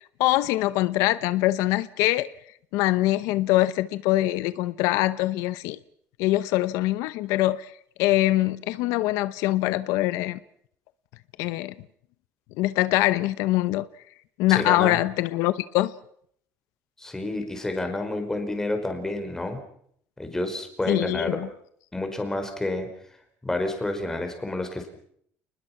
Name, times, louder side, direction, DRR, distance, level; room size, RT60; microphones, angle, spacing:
voice 1, 0.2-2.3 2.7-5.8 6.2-7.7 8.0-10.4 11.4-11.7 12.6-13.8 14.4-15.9 20.9-21.5, left 16 dB, 80° left, 0.9 m, -23 dB
voice 2, 14.5-15.0 17.0-19.6 20.2-21.4 21.9-22.9 23.4-24.9, left 2 dB, 10° left, 4.6 m, -29 dB
29.5 x 20.5 x 5.9 m
cardioid pair, 140°, 5 cm